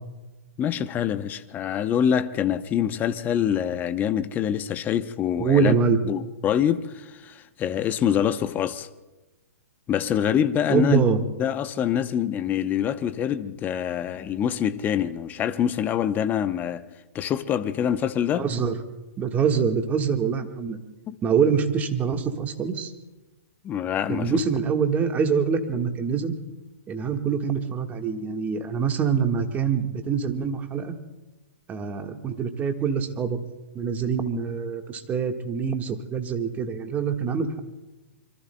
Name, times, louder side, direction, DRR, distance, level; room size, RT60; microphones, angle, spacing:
voice 1, 0.6-5.7 6.0-8.9 9.9-11.0 11.4-16.8 17.1-18.5 21.1-21.2 23.6-24.3, left 9 dB, 20° left, 0.8 m, -25 dB
voice 2, 5.4-6.0 10.7-11.2 18.3-18.8 19.2-20.8 21.2-22.9 24.1-26.3 26.9-30.9 31.7-33.4 33.7-37.6, right 6 dB, 20° right, 1.5 m, -25 dB
26.5 x 24.0 x 2.2 m
hypercardioid pair, 130°, 8 cm